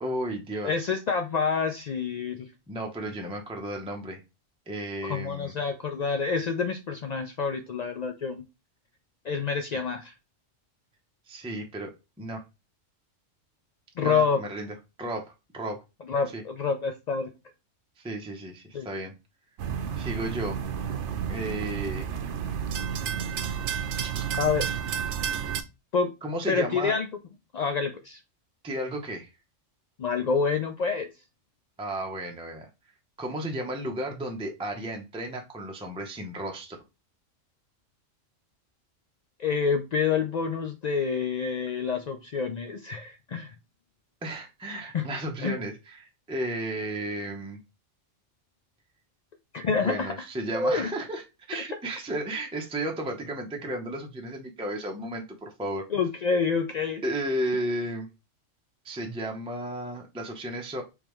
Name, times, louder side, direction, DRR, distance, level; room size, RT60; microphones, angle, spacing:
voice 1, 0.0-0.9 2.7-4.2 4.7-5.5 9.7-9.8 11.3-12.4 14.0-15.8 16.3-16.4 18.0-19.1 20.0-20.6 21.3-22.1 23.8-24.2 26.2-27.0 28.6-29.3 31.8-32.7 33.2-36.8 44.2-47.6 49.8-55.9 57.0-58.1 58.8-60.8, right 1 dB, 5° right, 2 dB, 0.6 m, -34 dB
voice 2, 0.6-2.5 5.1-8.4 9.2-10.1 14.0-14.4 16.1-17.3 18.7-18.9 24.4-24.7 25.9-26.1 26.5-27.1 27.5-28.2 30.0-31.1 39.4-43.5 44.9-45.0 45.4-45.6 49.5-50.1 50.5-50.9 55.9-57.0, left 5 dB, 70° left, 6 dB, 0.4 m, -27 dB
sound 1, 19.6-25.6, right 8 dB, 70° right, 0.9 m, -31 dB
5.2 x 3.2 x 3.0 m, 0.26 s
omnidirectional pair, 1.3 m